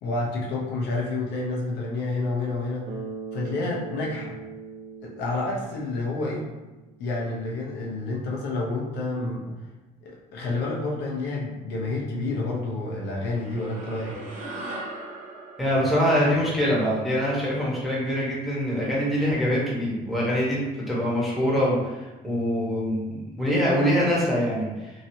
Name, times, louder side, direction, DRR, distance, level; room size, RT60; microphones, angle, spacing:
voice 1, 0.0-2.9 3.3-4.4 5.0-6.5 7.0-9.6 10.0-14.1, left 2 dB, 80° left, -3 dB, 0.8 m, -29 dB
Bass guitar, 2.9-7.1, right 5 dB, 85° right, 0.6 m, -40 dB
sound 1, 13.2-17.8, right 2 dB, 45° right, 0.9 m, -40 dB
voice 2, 15.6-24.9, equal, ahead, -7 dB, 1.2 m, -24 dB
2.9 x 2.7 x 2.8 m, 1.1 s
cardioid pair, 110°, 17 cm